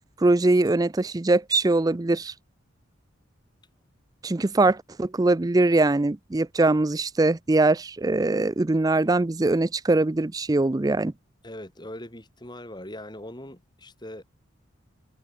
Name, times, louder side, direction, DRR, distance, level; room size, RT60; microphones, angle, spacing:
voice 1, 0.2-2.3 4.2-11.1, right 2 dB, 20° right, 0.4 m, -22 dB
voice 2, 11.4-14.2, left 1 dB, 20° left, 5.0 m, -40 dB
open air
head